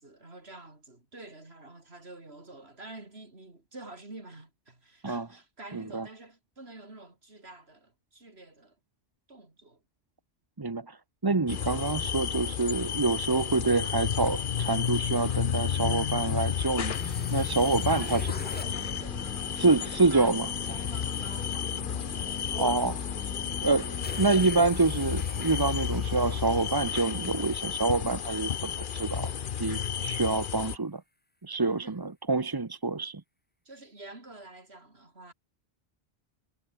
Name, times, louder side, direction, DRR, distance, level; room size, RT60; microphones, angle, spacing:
voice 1, 0.0-8.8 9.3-9.8 17.6-22.4 31.8-32.0 33.6-35.3, right 2 dB, 60° right, 4.6 m, -48 dB
voice 2, 5.7-6.0 10.6-11.0 11.2-18.3 19.6-20.5 22.5-23.1 23.6-29.3 29.6-31.0 31.4-33.2, right 3 dB, 20° right, 0.8 m, -27 dB
sound 1, 11.5-30.8, left 8 dB, 50° left, 0.9 m, -32 dB
sound 2, 16.9-27.9, left 1 dB, 10° left, 0.9 m, -43 dB
omnidirectional pair, 1.2 m